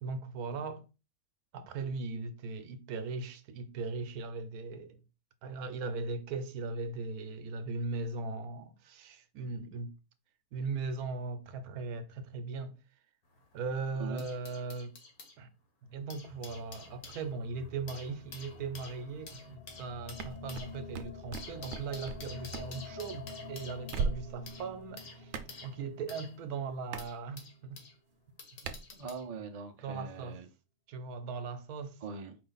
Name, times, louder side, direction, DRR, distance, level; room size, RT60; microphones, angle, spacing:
voice 1, 0.0-0.8 1.5-5.0 5.4-9.9 10.5-12.8 13.5-15.0 15.4-15.5 15.8-27.8 28.6-28.8 29.8-30.4 30.9-32.0, right 4 dB, 85° right, 1.1 m, -39 dB
sound 1, 13.3-15.4 15.9-28.0 28.4-29.3 30.2-30.3, left 4 dB, 90° left, 1.6 m, -51 dB
sound 2, 15.9-28.1, left 3 dB, 65° left, 0.5 m, -49 dB
sound 3, 20.2-22.2 22.5-22.7 23.9-24.5 25.3-25.5 26.9-27.1 28.7-28.8, right 5 dB, 70° right, 0.9 m, -36 dB
voice 2, 28.9-30.5 32.0-32.4, right 5 dB, 50° right, 0.4 m, -42 dB
4.7 x 2.5 x 3.9 m
omnidirectional pair, 1.5 m